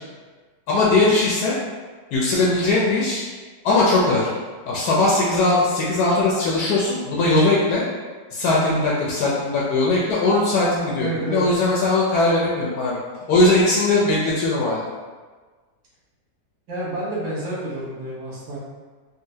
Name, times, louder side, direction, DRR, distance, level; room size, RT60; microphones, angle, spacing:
voice 1, 0.7-1.6 2.1-3.2 3.6-4.2 4.7-7.8 8.3-13.0 13.3-14.8, left 2 dB, 80° left, -5 dB, 1.1 m, -19 dB
voice 2, 11.0-11.6 16.7-18.6, right 1 dB, 80° right, -7 dB, 1.5 m, -29 dB
3.8 x 2.2 x 2.6 m, 1.4 s
omnidirectional pair, 1.7 m